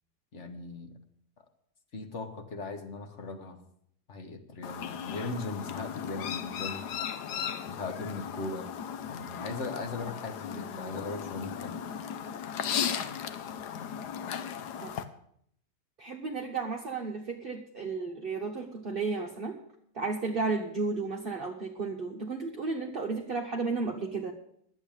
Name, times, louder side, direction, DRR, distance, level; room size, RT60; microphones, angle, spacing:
voice 1, 0.3-0.9 1.4-1.5 1.9-3.6 4.1-6.8 7.7-8.7 9.0-11.8, left 3 dB, 45° left, 7 dB, 1.5 m, -38 dB
Chirp tweet, 4.6-15.0, left 8 dB, 70° left, 1.3 m, -36 dB
voice 2, 10.6-11.0 14.8-14.9 16.0-19.6 19.9-24.3, right 4 dB, 35° right, 2 dB, 1.1 m, -33 dB
11.0 x 8.2 x 8.7 m, 0.69 s
omnidirectional pair, 1.8 m